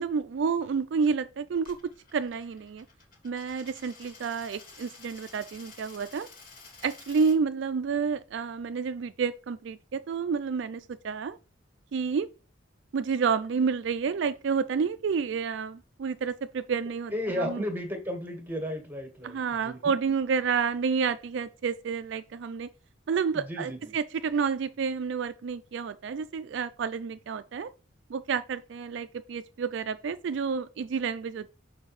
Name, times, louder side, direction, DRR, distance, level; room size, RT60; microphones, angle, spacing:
voice 1, 0.0-1.8 2.1-2.9 3.2-6.3 6.8-11.4 11.9-12.3 12.9-17.6 19.2-22.7 23.1-27.7 28.1-31.5, right 5 dB, 65° right, 0.3 m, -30 dB
Coin (dropping), 1.5-7.4, left 4 dB, 45° left, 2.3 m, -51 dB
voice 2, 17.1-19.8 23.3-23.9, equal, 10° right, 1.6 m, -34 dB
6.4 x 5.0 x 3.1 m
head